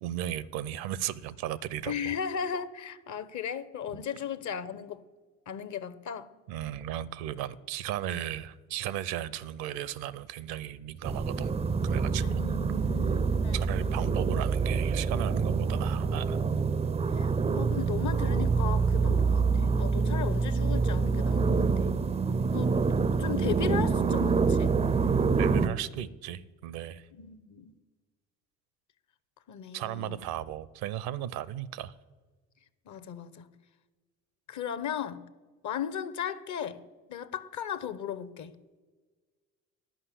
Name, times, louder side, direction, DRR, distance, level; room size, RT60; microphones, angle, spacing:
voice 1, 0.0-2.1 3.9-4.0 6.5-12.2 13.5-16.4 25.4-27.1 29.7-31.9, right 12 dB, 60° right, 19 dB, 0.6 m, -36 dB
voice 2, 1.9-5.0 5.5-6.3 12.2-13.6 17.1-22.0 22.5-24.8 27.1-27.8 29.5-30.2 32.9-33.5 34.5-35.2 35.6-36.8 37.1-38.6, left 8 dB, 45° left, 14 dB, 0.8 m, -36 dB
sound 1, 11.0-25.7, right 5 dB, 15° right, 0.4 m, -26 dB
11.5 x 5.5 x 8.3 m, 1.4 s
figure-of-eight pair, 50°, 41 cm